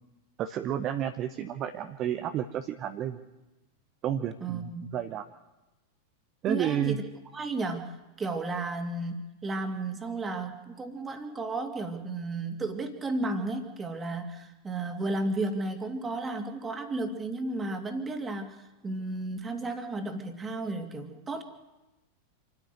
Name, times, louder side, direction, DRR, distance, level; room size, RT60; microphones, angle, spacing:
voice 1, 0.4-3.2 4.0-5.2 6.4-7.0, right 10 dB, 35° right, 7 dB, 1.0 m, -31 dB
voice 2, 4.4-4.9 6.5-7.0 7.3-21.4, right 2 dB, 15° right, 6 dB, 2.5 m, -33 dB
27.0 x 11.0 x 9.4 m, 1.0 s
figure-of-eight pair, 90°, 0 cm